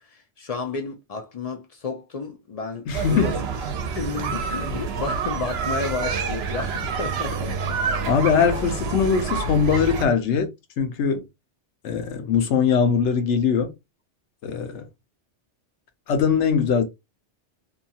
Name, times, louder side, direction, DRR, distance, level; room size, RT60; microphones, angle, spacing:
voice 1, 0.1-3.4 3.9-7.8, left 4 dB, 55° left, 0.4 m, -32 dB
voice 2, 2.9-3.3 8.1-10.5 10.8-11.2 11.8-13.7 14.4-14.8 16.1-16.8, left 6 dB, 75° left, 0.9 m, -21 dB
sound 1, 2.9-10.0, right 5 dB, 65° right, 0.8 m, -28 dB
2.7 x 2.3 x 2.7 m
omnidirectional pair, 1.2 m